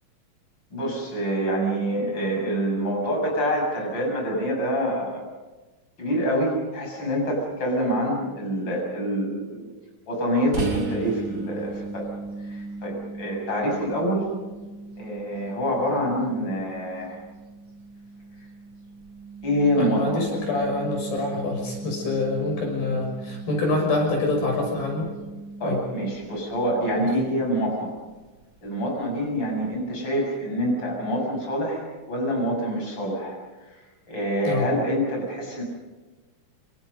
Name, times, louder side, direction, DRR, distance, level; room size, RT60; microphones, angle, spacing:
voice 1, 0.7-5.3 6.0-9.7 10.1-12.1 12.4-14.3 15.0-17.2 19.4-20.2 25.6-27.9 28.6-33.8 34.1-35.6, equal, 30° left, 0 dB, 7.6 m, -26 dB
sound 1, 10.5-28.0, right 3 dB, 35° right, 3.1 m, -37 dB
voice 2, 19.8-25.1 25.6-25.8 34.5-34.7, left 2 dB, 80° left, 1 dB, 8.1 m, -26 dB
27.5 x 27.0 x 5.4 m, 1.2 s
omnidirectional pair, 4.2 m